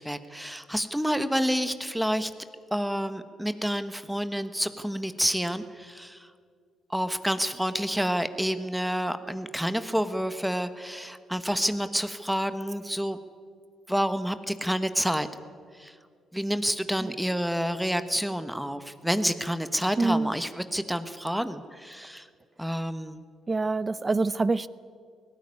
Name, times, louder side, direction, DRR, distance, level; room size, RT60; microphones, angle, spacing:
voice 1, 0.0-2.3 2.7-6.3 6.9-13.2 13.9-15.3 15.8-15.9 16.3-22.2 22.6-23.2, equal, ahead, 11 dB, 1.1 m, -29 dB
voice 2, 20.0-20.3 23.5-24.7, right 3 dB, 25° right, 17 dB, 0.7 m, -26 dB
18.5 x 16.5 x 9.7 m, 2.2 s
cardioid pair, 90°, 0 cm